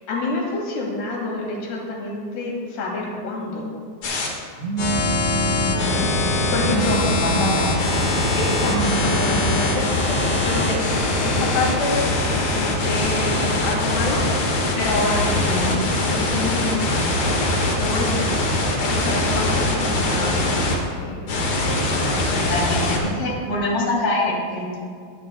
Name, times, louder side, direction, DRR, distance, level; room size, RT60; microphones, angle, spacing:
voice 1, 0.1-3.7 6.5-7.0 8.3-8.7 9.0-10.8 11.2-12.0 12.5-15.8 16.1-17.0 17.8-18.5 18.8-21.2, left 2 dB, 90° left, -2 dB, 4.2 m, -27 dB
sound 1, 4.0-4.3 4.8-20.8 21.3-23.0, left 2 dB, 55° left, 2.5 m, -22 dB
Telephone, 4.6-5.6 6.6-7.6 8.6-9.6, right 4 dB, 80° right, 3.2 m, -27 dB
voice 2, 5.5-6.1 7.2-7.7 15.4-15.7 22.3-24.8, left 2 dB, 35° left, -5 dB, 3.7 m, -25 dB
21.5 x 11.0 x 2.3 m, 2.1 s
omnidirectional pair, 4.6 m